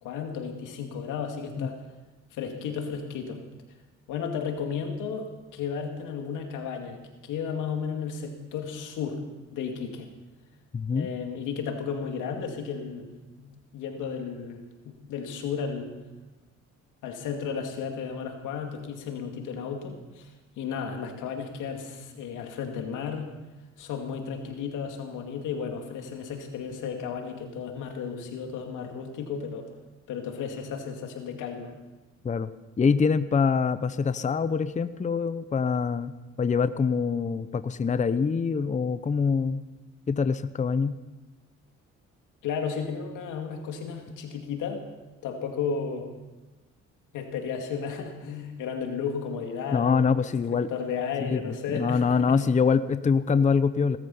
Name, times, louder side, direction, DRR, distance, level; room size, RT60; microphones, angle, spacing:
voice 1, 0.0-1.8 2.3-3.4 4.1-9.2 9.5-10.1 10.9-13.1 13.4-15.9 17.0-23.3 23.8-29.7 30.1-31.7 42.4-44.8 45.2-46.1 47.1-52.4, left 6 dB, 90° left, 3 dB, 2.4 m, -34 dB
voice 2, 10.7-11.1 32.2-32.5 32.8-36.1 36.4-39.6 40.1-41.0 49.7-50.7 51.2-54.0, left 5 dB, 25° left, 13 dB, 0.6 m, -24 dB
18.0 x 13.5 x 5.6 m, 1.1 s
cardioid pair, 90°, 30 cm